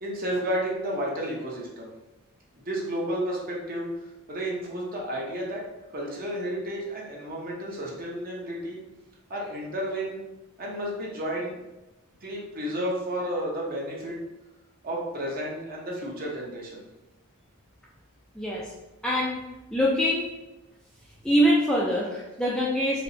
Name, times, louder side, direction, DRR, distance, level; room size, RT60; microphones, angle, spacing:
voice 1, 0.0-1.9 2.6-3.9 4.3-5.6 5.9-8.8 9.3-10.2 10.6-11.6 12.2-14.2 14.8-16.9, equal, 40° right, -3 dB, 0.8 m, -32 dB
voice 2, 18.3-18.7 19.0-19.4 19.7-20.3 21.2-23.0, equal, 5° left, -5 dB, 0.3 m, -24 dB
4.3 x 2.1 x 2.7 m, 1.0 s
head